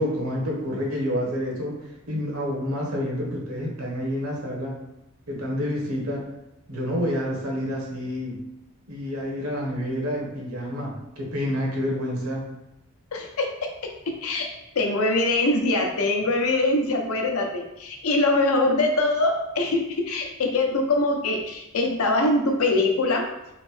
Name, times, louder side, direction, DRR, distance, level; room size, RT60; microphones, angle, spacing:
voice 1, 0.0-1.8 2.1-4.8 5.3-6.2 6.7-8.4 8.9-12.5, equal, 70° right, -1 dB, 0.9 m, -28 dB
voice 2, 13.1-13.5 14.1-14.4 14.8-23.2, left 2 dB, 75° left, 2 dB, 0.6 m, -23 dB
3.1 x 2.6 x 3.2 m, 0.91 s
head